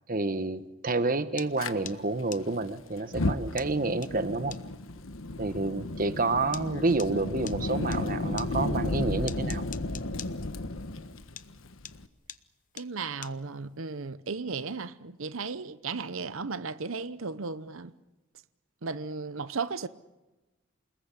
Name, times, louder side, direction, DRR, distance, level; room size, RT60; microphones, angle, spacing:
voice 1, 0.1-4.6 5.4-9.7, right 3 dB, 40° right, 1.1 m, -29 dB
sound 1, 1.4-8.0 8.4-11.1 11.4-14.0, left 10 dB, 40° left, 0.9 m, -44 dB
Fire, 1.6-1.7 3.0-12.1, left 2 dB, 80° left, 1.3 m, -33 dB
voice 2, 12.7-17.9 18.8-19.9, right 4 dB, 80° right, 0.9 m, -35 dB
28.5 x 20.0 x 8.4 m
head